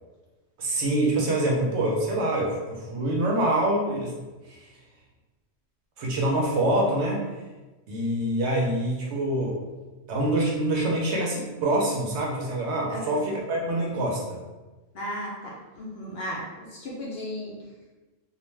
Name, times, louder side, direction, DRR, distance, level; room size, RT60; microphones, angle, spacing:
voice 1, 0.6-4.1 4.5-4.6 6.0-7.3 7.9-9.6 10.1-14.4, right 1 dB, 65° right, -2 dB, 0.8 m, -25 dB
voice 2, 14.9-17.5, equal, 60° left, -4 dB, 0.7 m, -35 dB
2.4 x 2.1 x 3.1 m, 1.2 s
omnidirectional pair, 1.3 m